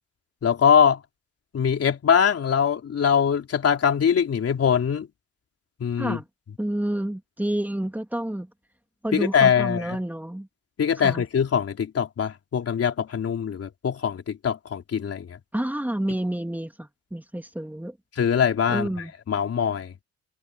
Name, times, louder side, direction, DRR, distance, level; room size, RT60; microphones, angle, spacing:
voice 1, 0.4-1.0 1.5-5.1 5.8-6.2 9.1-10.0 10.8-15.4 18.2-18.9 19.3-19.9, left 7 dB, 50° left, 3.7 m, -22 dB
voice 2, 6.6-8.5 9.0-10.5 11.0-11.2 15.5-18.0 18.7-19.1, right 1 dB, 5° right, 2.8 m, -29 dB
cardioid pair, 90°, 30 cm